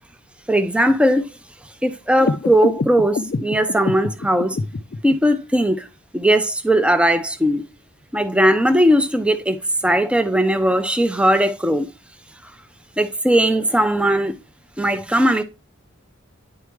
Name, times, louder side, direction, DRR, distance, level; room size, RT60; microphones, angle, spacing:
voice 1, 0.5-1.3 1.8-4.6 5.0-5.8 6.1-7.6 8.1-11.9 13.0-14.3 14.8-15.4, equal, 5° right, 0.5 m, -18 dB
sound 1, 2.2-5.2, left 3 dB, 45° left, 0.4 m, -26 dB
10.0 x 4.7 x 3.1 m
head